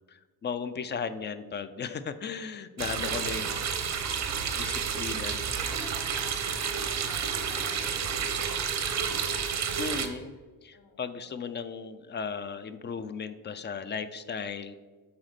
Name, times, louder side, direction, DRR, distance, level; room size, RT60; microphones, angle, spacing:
voice 1, 0.0-3.5 4.5-5.4 9.8-10.4 10.6-14.7, left 6 dB, 30° left, 12 dB, 0.4 m, -36 dB
sound 1, 2.8-10.1, right 7 dB, 45° right, 0.9 m, -30 dB
voice 2, 3.1-4.3 4.7-4.9 5.2-10.0 10.7-11.3, left 3 dB, 70° left, 2 dB, 1.5 m, -51 dB
7.8 x 4.2 x 5.8 m, 1.4 s
cardioid pair, 130°, 38 cm